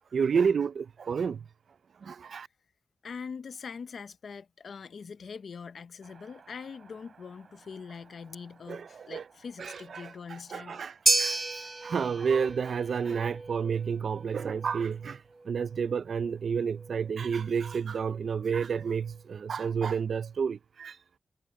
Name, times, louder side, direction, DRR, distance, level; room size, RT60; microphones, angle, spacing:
voice 1, 0.1-1.4 2.0-2.5 8.7-9.2 9.6-10.1 10.5-11.4 11.8-15.2 15.5-21.0, right 6 dB, 85° right, 0.4 m, -30 dB
voice 2, 3.0-10.8, left 5 dB, 80° left, 0.7 m, -43 dB
sound 1, 6.0-19.9, right 5 dB, 65° right, 6.8 m, -64 dB
sound 2, 11.1-19.4, right 2 dB, 30° right, 0.8 m, -34 dB
wide cardioid pair, 165°, 0 cm